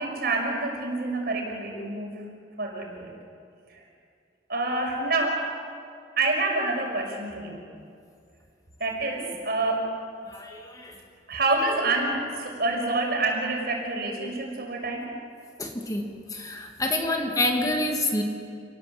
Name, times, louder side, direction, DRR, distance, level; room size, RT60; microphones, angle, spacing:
voice 1, 0.0-2.2 2.6-3.1 3.7-3.8 4.5-5.4 6.2-7.6 8.8-9.9 11.3-15.1, right 2 dB, 60° right, 1 dB, 5.8 m, -27 dB
voice 2, 10.3-11.0 15.6-18.2, left 1 dB, 20° left, 2 dB, 2.5 m, -28 dB
28.5 x 20.0 x 7.9 m, 2.3 s
head